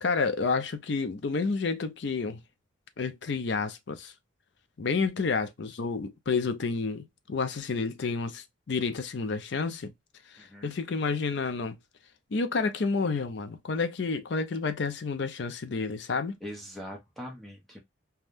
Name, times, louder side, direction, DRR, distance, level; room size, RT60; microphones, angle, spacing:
voice 1, 0.0-2.4 3.0-4.1 4.8-9.9 10.3-11.7 12.3-16.4, left 4 dB, 55° left, 0.5 m, -30 dB
voice 2, 10.4-10.8 16.4-17.8, equal, ahead, 0.8 m, -42 dB
3.4 x 2.2 x 2.5 m
head